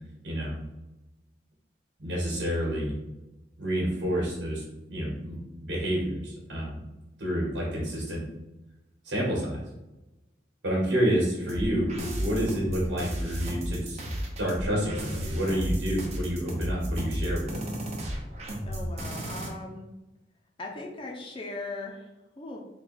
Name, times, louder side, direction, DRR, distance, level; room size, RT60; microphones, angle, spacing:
voice 1, 0.2-0.6 2.0-3.2 3.6-6.8 7.2-8.2 9.0-9.6 10.6-14.0 14.4-17.7, equal, 75° right, -4 dB, 1.4 m, -29 dB
sound 1, 11.5-19.5, equal, 35° right, 0.8 m, -33 dB
voice 2, 18.7-19.9 20.6-22.6, left 2 dB, 30° left, 0 dB, 0.5 m, -39 dB
3.8 x 2.3 x 4.3 m, 1.0 s
head